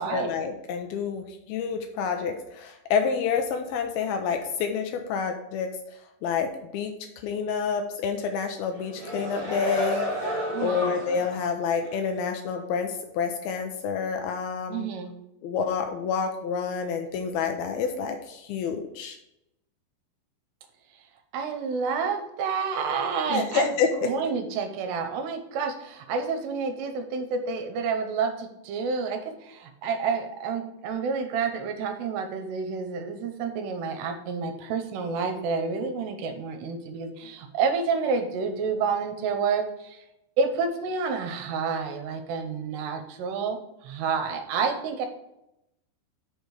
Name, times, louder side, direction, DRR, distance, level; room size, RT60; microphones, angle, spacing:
voice 1, 0.0-5.7 6.2-6.5 6.7-6.9 7.2-10.0 10.6-14.9 15.4-19.2 23.3-24.1, left 6 dB, 80° left, 4 dB, 2.2 m, -28 dB
sound 1, 8.7-11.4 11.9-12.0, equal, 50° right, 0.4 m, -31 dB
voice 2, 10.5-10.9 14.7-15.1 21.3-23.7 24.0-40.0 40.4-43.6 43.8-45.1, right 5 dB, 80° right, 6 dB, 2.8 m, -29 dB
6.8 x 5.0 x 6.3 m, 0.86 s
omnidirectional pair, 5.1 m